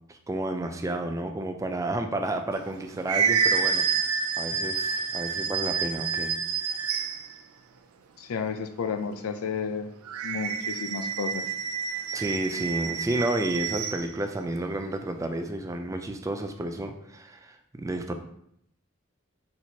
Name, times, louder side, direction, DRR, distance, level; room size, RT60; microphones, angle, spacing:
voice 1, 0.1-3.9 4.4-6.8 12.1-18.1, right 1 dB, 15° right, 5 dB, 0.3 m, -31 dB
sound 1, 2.6-7.3 10.1-14.1, right 6 dB, 85° right, 0.4 m, -28 dB
voice 2, 8.2-9.9 10.2-11.5, left 5 dB, 80° left, 8 dB, 0.4 m, -32 dB
4.3 x 4.2 x 2.8 m, 0.73 s
head